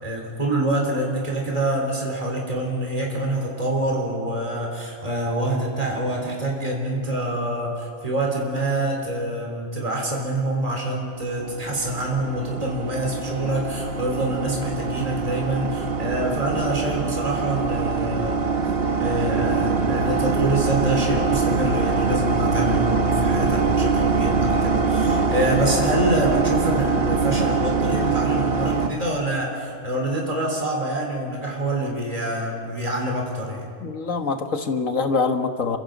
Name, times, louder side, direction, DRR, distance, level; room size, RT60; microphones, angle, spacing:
voice 1, 0.0-18.6 19.0-33.7, right 1 dB, 30° right, -1 dB, 3.9 m, -26 dB
sound 1, 11.4-28.9, right 4 dB, 50° right, 1.3 m, -23 dB
voice 2, 33.8-35.8, left 4 dB, 90° left, 6 dB, 1.9 m, -24 dB
29.5 x 24.5 x 5.2 m, 2.3 s
omnidirectional pair, 1.3 m